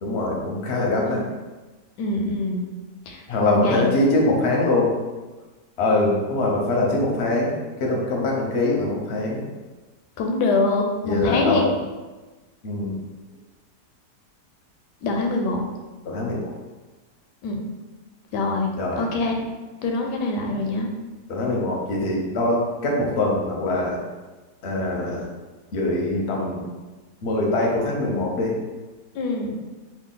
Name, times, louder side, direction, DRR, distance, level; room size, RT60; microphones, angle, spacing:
voice 1, 0.0-1.2 3.3-4.9 5.8-9.4 11.0-11.7 12.6-13.0 16.0-16.5 18.8-19.0 21.3-24.0 24.6-25.2 25.7-26.7 27.2-28.6, left 2 dB, 55° left, -2 dB, 0.8 m, -23 dB
voice 2, 2.0-2.6 3.1-3.9 10.2-11.6 15.0-15.6 17.4-17.6 18.3-18.7 19.0-19.4 19.8-20.9 29.1-29.5, left 3 dB, 80° left, 2 dB, 1.2 m, -24 dB
3.3 x 2.4 x 3.7 m, 1.2 s
omnidirectional pair, 1.8 m